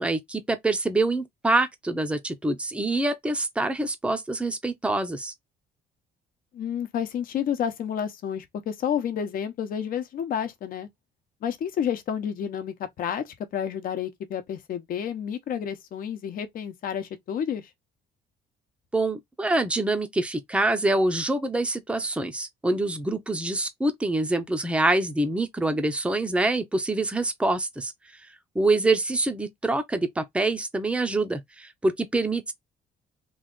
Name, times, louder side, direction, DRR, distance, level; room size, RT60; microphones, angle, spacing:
voice 1, 0.0-5.3 18.9-27.9 28.5-32.5, right 2 dB, 5° right, 0.6 m, -25 dB
voice 2, 6.5-10.9 11.4-17.7, left 8 dB, 55° left, 0.9 m, -30 dB
3.2 x 2.4 x 3.7 m
cardioid pair, 110°, 17 cm